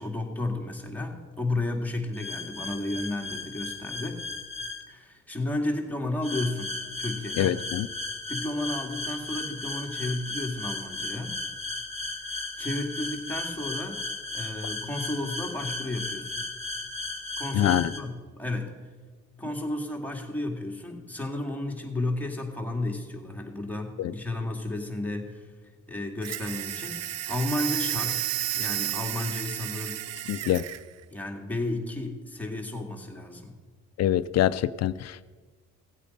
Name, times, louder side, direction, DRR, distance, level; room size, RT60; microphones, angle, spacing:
voice 1, 0.0-4.2 4.9-7.6 8.3-11.4 12.6-14.0 14.3-16.5 17.4-18.8 19.4-25.4 25.9-28.3 28.5-30.0 31.1-33.6, left 2 dB, 5° left, 1 dB, 2.1 m, -32 dB
sound 1, 2.1-4.8 6.2-18.0, left 2 dB, 20° left, 1.6 m, -35 dB
voice 2, 7.4-7.9 17.5-17.9 24.0-24.1 30.3-30.6 34.0-35.2, left 12 dB, 60° left, 15 dB, 0.5 m, -25 dB
sound 2, 26.2-30.8, right 12 dB, 60° right, 0.5 m, -32 dB
16.0 x 8.3 x 5.3 m, 1.4 s
cardioid pair, 90°, 30 cm